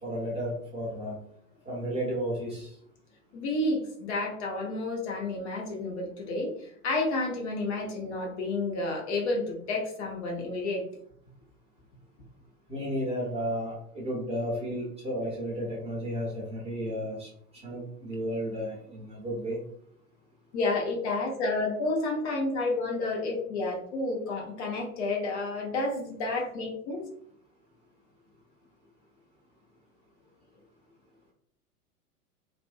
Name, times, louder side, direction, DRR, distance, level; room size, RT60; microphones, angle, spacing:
voice 1, 0.0-1.1 1.7-2.7 12.7-17.3 17.6-19.6, equal, 15° right, -6 dB, 0.8 m, -33 dB
voice 2, 3.3-10.9 20.5-27.1, left 2 dB, 50° left, -1 dB, 0.8 m, -30 dB
2.5 x 2.2 x 2.4 m, 0.65 s
figure-of-eight pair, 95°, 45 cm